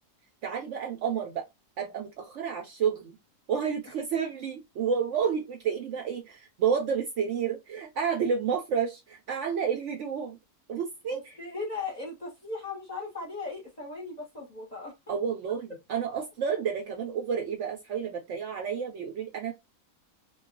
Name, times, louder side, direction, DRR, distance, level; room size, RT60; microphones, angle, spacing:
voice 1, 0.4-1.4 1.8-3.1 3.5-10.4 10.7-11.2 15.1-19.5, right 7 dB, 65° right, 0.8 m, -30 dB
voice 2, 11.1-14.9, left 3 dB, 35° left, 0.9 m, -37 dB
2.3 x 2.3 x 3.7 m
omnidirectional pair, 1.6 m